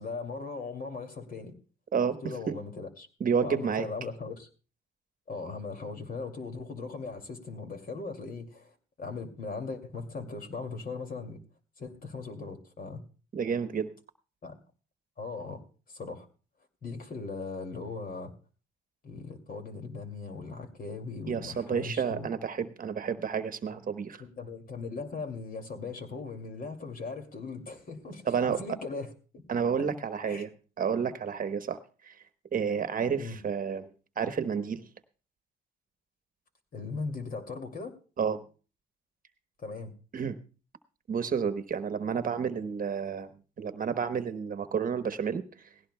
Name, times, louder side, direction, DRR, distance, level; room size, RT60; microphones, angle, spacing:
voice 1, 0.0-1.5 2.2-3.1 3.4-4.5 5.3-11.4 11.8-13.0 14.4-14.5 15.2-15.6 15.9-16.3 16.8-18.3 19.0-22.3 24.2-29.4 29.8-29.9 30.3-30.5 33.2-33.4 36.7-38.0 39.6-39.9, left 4 dB, 45° left, 5 dB, 2.5 m, -39 dB
voice 2, 3.2-3.9 13.3-13.9 21.3-24.2 28.3-28.6 29.5-30.5 30.8-31.8 32.0-32.1 32.5-33.9 34.2-34.9 38.2-38.4 40.1-40.4 41.1-43.3 43.6-45.4, right 6 dB, 45° right, 10 dB, 1.1 m, -30 dB
18.5 x 16.0 x 2.2 m, 0.36 s
cardioid pair, 90°, 20 cm